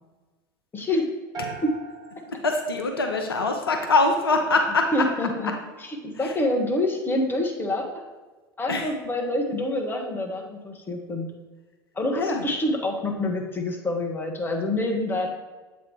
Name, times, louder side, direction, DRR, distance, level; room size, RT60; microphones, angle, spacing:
voice 1, 0.7-1.0 1.6-1.7 4.9-5.5 5.8-8.0 8.6-11.3 11.9-15.3, left 1 dB, 15° left, 1 dB, 1.2 m, -26 dB
sound 1, 1.3-3.6, right 5 dB, 30° right, 1.0 m, -40 dB
voice 2, 2.3-4.9 8.7-8.9 12.1-12.4, left 3 dB, 80° left, 3 dB, 0.7 m, -23 dB
7.7 x 3.1 x 4.8 m, 1.3 s
figure-of-eight pair, 75°, 12 cm